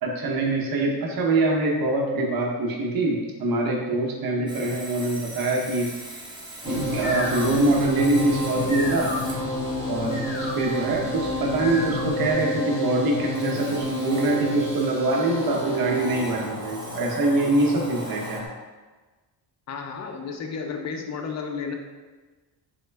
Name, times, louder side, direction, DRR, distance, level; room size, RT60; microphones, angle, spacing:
voice 1, 0.0-6.2 6.6-9.1 9.9-18.4, right 2 dB, 50° right, -1 dB, 0.8 m, -24 dB
Sawing, 4.5-18.4, right 1 dB, 10° right, 0.6 m, -42 dB
sound 1, 6.6-18.5, equal, 10° left, 1.0 m, -30 dB
sound 2, 6.7-12.3, left 2 dB, 90° left, 0.6 m, -35 dB
voice 2, 19.7-21.7, left 5 dB, 40° left, 4 dB, 0.4 m, -32 dB
3.1 x 2.1 x 3.2 m, 1.3 s
cardioid pair, 90°, 44 cm